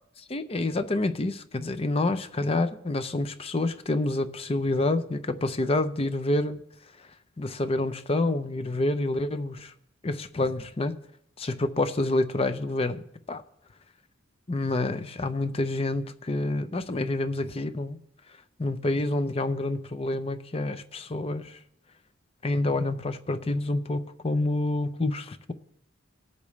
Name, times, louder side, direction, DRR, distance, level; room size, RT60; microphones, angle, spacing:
voice 1, 0.3-6.6 7.4-9.7 10.0-11.0 11.4-13.0 13.3-13.4 14.5-18.0 18.6-21.6 22.4-25.5, left 2 dB, 30° left, 0.6 m, -28 dB
18.5 x 8.4 x 3.2 m
head